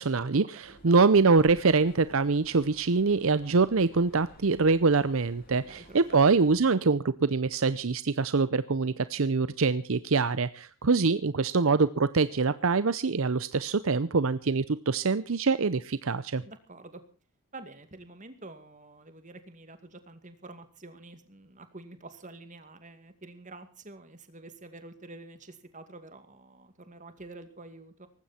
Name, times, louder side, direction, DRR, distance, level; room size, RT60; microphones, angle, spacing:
voice 1, 0.0-16.4, right 4 dB, 65° right, 15 dB, 0.7 m, -24 dB
sound 1, 0.6-6.6, equal, 45° left, 7.1 m, -55 dB
voice 2, 5.7-6.2 16.4-17.0 17.5-28.1, right 2 dB, 35° right, 9 dB, 2.3 m, -48 dB
19.0 x 15.5 x 4.4 m, 0.37 s
head